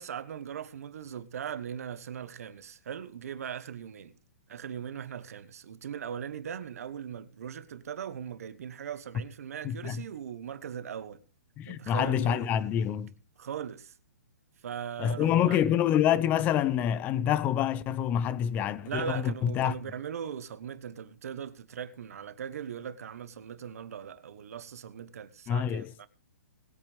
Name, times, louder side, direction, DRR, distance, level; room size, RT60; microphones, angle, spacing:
voice 1, 0.0-4.2 4.5-11.2 11.7-12.5 13.4-13.9 14.6-15.6 18.8-26.1, right 8 dB, 60° right, 1.3 m, -39 dB
voice 2, 9.6-10.0 11.6-13.1 15.0-19.8 25.5-26.1, left 10 dB, 20° left, 0.7 m, -27 dB
20.0 x 8.8 x 3.5 m
hypercardioid pair, 155°, 9 cm